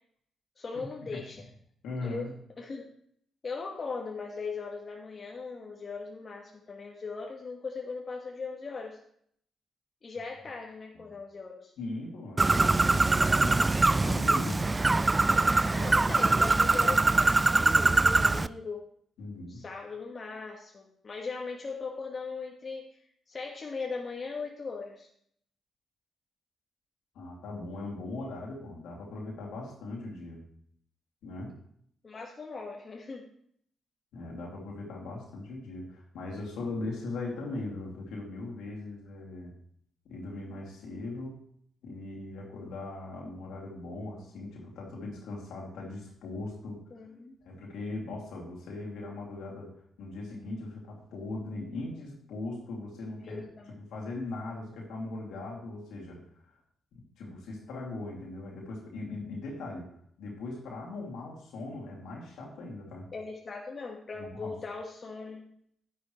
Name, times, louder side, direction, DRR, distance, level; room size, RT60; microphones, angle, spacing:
voice 1, 0.6-1.4 2.0-2.8 3.4-9.0 10.0-11.7 15.7-17.5 17.8-18.8 19.5-22.9 23.3-25.1 32.0-33.3 46.9-47.3 53.2-53.7 63.1-65.5, left 4 dB, 45° left, 0 dB, 1.6 m, -39 dB
voice 2, 1.8-2.3 11.8-13.7 14.0-14.6 19.2-19.6 27.1-30.4 31.2-31.5 34.1-39.6 40.0-41.4 41.8-46.8 47.4-53.5 53.8-56.2 56.9-59.9 60.2-63.1 64.2-64.6, left 2 dB, 70° left, -2 dB, 2.7 m, -39 dB
Bird, 12.4-18.5, right 3 dB, 25° right, 0.4 m, -23 dB
11.0 x 10.5 x 3.2 m, 0.67 s
hypercardioid pair, 40°, 0 cm